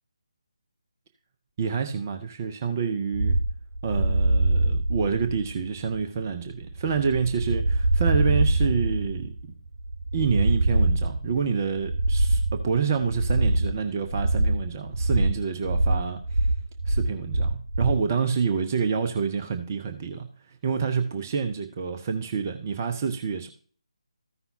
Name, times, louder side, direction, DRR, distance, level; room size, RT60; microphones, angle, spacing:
voice 1, 1.6-3.4 3.8-9.5 10.1-16.5 16.9-23.5, right 6 dB, 30° right, 7 dB, 0.8 m, -28 dB
sound 1, 3.1-18.0, right 2 dB, 70° right, 0.9 m, -24 dB
14.5 x 5.5 x 2.8 m, 0.44 s
figure-of-eight pair, 150°, 3 cm